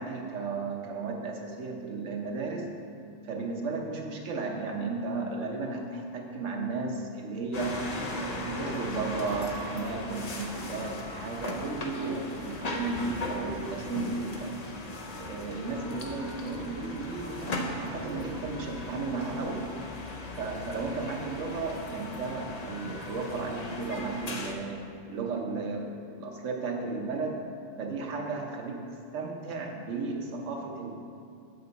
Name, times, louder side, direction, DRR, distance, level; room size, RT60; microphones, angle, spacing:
voice 1, 0.0-2.7 3.2-7.8 8.1-14.5 15.2-19.7 20.4-24.8 25.1-27.5 27.8-28.8 29.1-30.9, right 3 dB, 75° right, 1 dB, 1.2 m, -34 dB
sound 1, 7.5-24.5, left 2 dB, 40° left, 0.7 m, -38 dB
7.8 x 6.8 x 4.0 m, 2.4 s
omnidirectional pair, 1.3 m